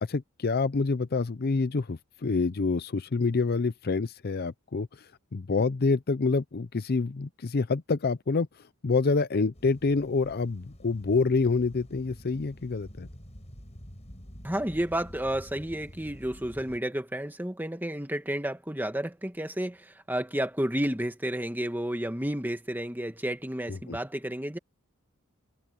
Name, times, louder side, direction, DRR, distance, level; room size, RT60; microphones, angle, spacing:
voice 1, 0.0-13.1 23.7-24.0, left 4 dB, 45° left, 0.6 m, -27 dB
sound 1, 9.5-16.8, equal, 30° left, 6.2 m, -48 dB
voice 2, 14.4-24.6, right 1 dB, 10° right, 2.1 m, -31 dB
head